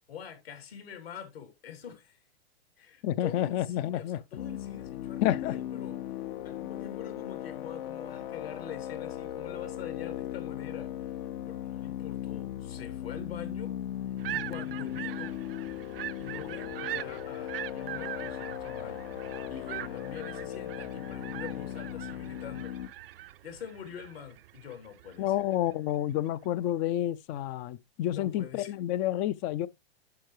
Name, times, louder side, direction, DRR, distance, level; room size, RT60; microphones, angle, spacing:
voice 1, 0.1-2.2 2.8-13.7 14.3-15.3 16.2-19.0 19.5-22.8 23.4-25.5 28.1-28.7, left 8 dB, 65° left, 3.1 m, -45 dB
voice 2, 3.0-4.2 5.2-5.5 25.2-29.7, left 12 dB, 25° left, 0.4 m, -29 dB
sound 1, 4.4-22.9, left 11 dB, 50° left, 0.7 m, -38 dB
sound 2, 14.2-25.7, right 14 dB, 60° right, 0.5 m, -42 dB
11.5 x 5.8 x 3.1 m
figure-of-eight pair, 105°, 32 cm